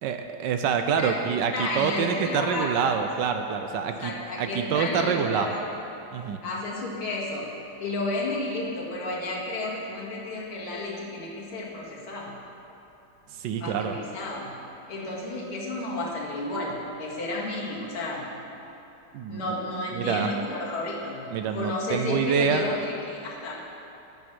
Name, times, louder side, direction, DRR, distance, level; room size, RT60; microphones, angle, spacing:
voice 1, 0.0-5.6 6.1-6.4 13.3-14.0 19.1-19.5 19.9-20.3 21.3-22.7, right 7 dB, 75° right, 6 dB, 1.1 m, -26 dB
voice 2, 1.5-2.8 4.0-5.6 6.4-7.5 7.8-12.3 13.6-14.5 14.9-18.3 19.3-23.5, left 2 dB, 90° left, -5 dB, 2.9 m, -32 dB
10.5 x 8.6 x 6.2 m, 3.0 s
omnidirectional pair, 2.3 m